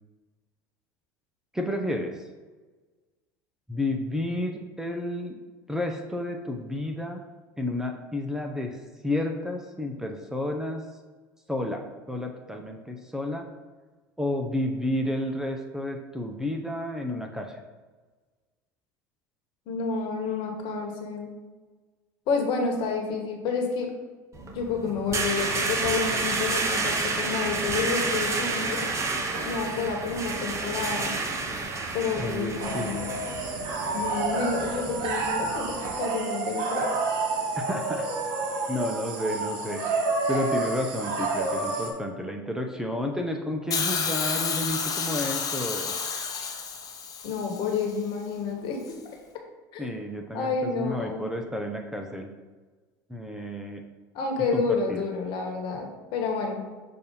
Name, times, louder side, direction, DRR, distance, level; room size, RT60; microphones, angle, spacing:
voice 1, 1.5-2.1 3.7-5.4 5.7-7.2 7.6-8.8 9.0-10.8 11.5-13.5 14.2-17.6 32.2-33.0 37.6-38.1 38.7-39.8 40.3-45.9 49.8-52.3 53.1-53.8 54.5-55.0, left 1 dB, 5° right, 3 dB, 0.7 m, -31 dB
voice 2, 19.7-21.3 22.3-23.9 24.5-28.9 29.4-31.2 31.9-33.1 33.9-36.9 47.2-48.9 49.7-49.9 50.3-51.2 54.1-56.6, left 4 dB, 55° left, 2 dB, 1.4 m, -29 dB
sound 1, 24.3-35.9, right 3 dB, 30° right, 1.0 m, -30 dB
sound 2, 32.6-41.9, right 3 dB, 60° right, 1.4 m, -29 dB
Hiss, 43.7-47.8 48.9-49.0, left 6 dB, 40° left, 0.9 m, -30 dB
6.5 x 2.7 x 5.5 m, 1.3 s
hypercardioid pair, 80°, 10 cm